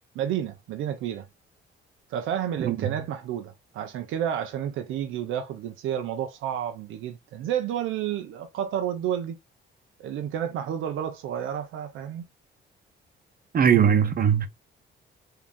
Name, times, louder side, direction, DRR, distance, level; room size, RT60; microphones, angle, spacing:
voice 1, 0.1-1.3 2.1-9.4 10.0-12.2, right 10 dB, 85° right, 0.6 m, -30 dB
voice 2, 13.5-14.5, right 8 dB, 45° right, 0.9 m, -20 dB
3.6 x 2.8 x 3.4 m
cardioid pair, 90°, 20 cm